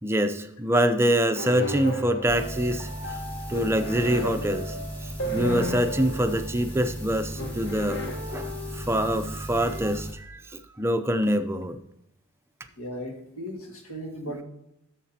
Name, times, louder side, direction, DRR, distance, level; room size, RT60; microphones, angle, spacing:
voice 1, 0.0-3.2 3.5-4.8 5.0-10.4 10.8-11.8, equal, 10° right, 8 dB, 0.5 m, -25 dB
sound 1, 1.4-9.0, equal, 55° left, 1.3 m, -35 dB
sound 2, 2.3-10.1, equal, 10° left, 2.1 m, -36 dB
voice 2, 12.8-14.4, equal, 70° left, 2 dB, 1.9 m, -36 dB
11.0 x 7.4 x 2.8 m, 0.84 s
head